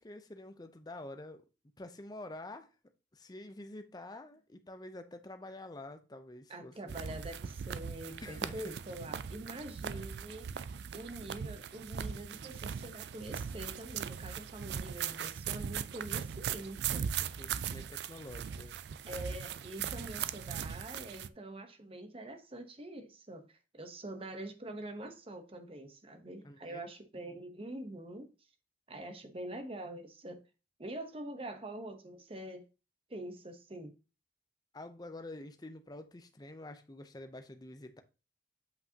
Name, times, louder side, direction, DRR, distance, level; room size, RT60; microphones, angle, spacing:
voice 1, 0.0-1.4 1.8-2.7 3.1-7.0 8.2-8.7 9.9-10.1 17.1-18.8 26.4-26.9 34.7-38.0, left 2 dB, 20° left, 0.6 m, -48 dB
voice 2, 6.5-17.1 19.1-28.3 28.9-30.4 30.8-32.6 33.1-33.9, right 1 dB, 30° right, 0.9 m, -45 dB
sound 1, 6.9-21.3, right 8 dB, 60° right, 0.3 m, -39 dB
7.9 x 5.5 x 2.8 m
head